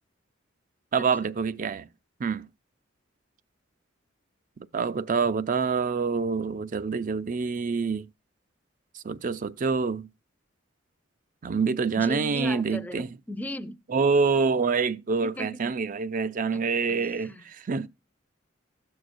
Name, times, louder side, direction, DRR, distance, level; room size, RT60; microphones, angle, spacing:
voice 1, 0.9-1.9 2.2-2.5 4.7-8.1 9.0-10.1 11.4-13.1 13.9-17.9, right 5 dB, 45° right, 0.4 m, -26 dB
voice 2, 11.9-13.8 15.2-15.6 16.5-17.5, equal, 10° left, 0.5 m, -38 dB
16.0 x 6.4 x 2.5 m
head